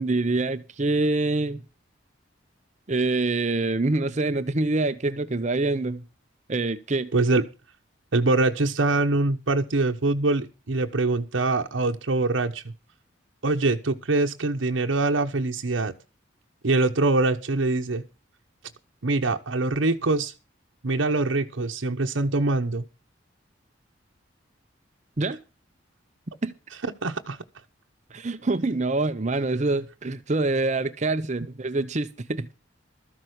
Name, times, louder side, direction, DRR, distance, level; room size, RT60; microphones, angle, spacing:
voice 1, 0.0-1.6 2.9-6.0 6.5-7.1 25.2-25.4 26.4-26.5 28.1-32.5, right 2 dB, 35° right, 0.7 m, -25 dB
voice 2, 7.1-7.4 8.1-12.6 13.4-15.9 16.6-18.0 19.0-20.3 20.8-22.8 26.8-27.4, right 2 dB, 75° right, 1.0 m, -24 dB
13.5 x 6.0 x 8.0 m
head